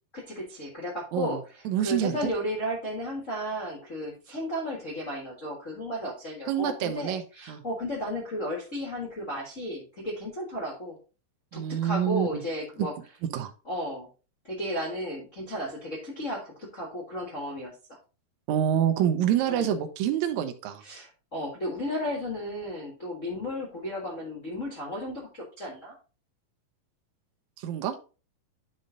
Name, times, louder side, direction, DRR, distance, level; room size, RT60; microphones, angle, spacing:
voice 1, 0.1-10.9 11.5-12.9 13.6-14.1 14.4-17.7 19.5-19.7 20.8-25.9, equal, 50° left, -4 dB, 0.9 m, -34 dB
voice 2, 1.7-2.3 6.5-7.2 7.5-7.6 11.5-12.4 12.8-12.9 13.3-13.5 18.5-20.8 27.6-28.0, right 10 dB, 70° right, 7 dB, 1.8 m, -27 dB
10.5 x 3.6 x 3.8 m, 0.34 s
omnidirectional pair, 4.2 m